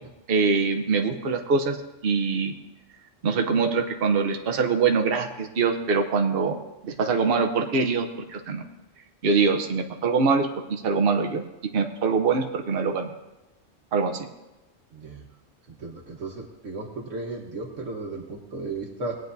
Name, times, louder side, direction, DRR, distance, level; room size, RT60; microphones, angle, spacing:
voice 1, 0.3-2.5 3.2-8.6 9.2-11.4 11.7-13.1 13.9-14.3, right 4 dB, 55° right, 4 dB, 1.0 m, -24 dB
voice 2, 14.9-15.3 15.7-19.2, right 3 dB, 85° right, -1 dB, 1.5 m, -35 dB
19.5 x 9.1 x 2.6 m, 1.0 s
omnidirectional pair, 1.3 m